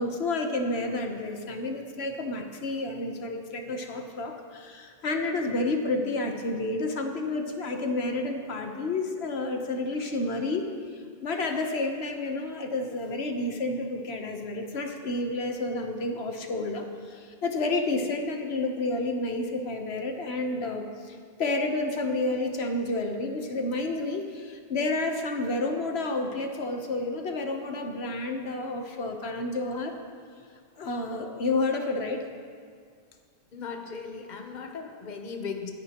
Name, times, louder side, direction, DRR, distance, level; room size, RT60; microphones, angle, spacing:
voice 1, 0.0-10.7 11.2-30.0 30.8-32.2, left 2 dB, 80° left, 4 dB, 1.3 m, -30 dB
voice 2, 33.5-35.7, left 5 dB, 45° left, 4 dB, 1.0 m, -37 dB
22.5 x 10.0 x 3.0 m, 2.1 s
omnidirectional pair, 1.1 m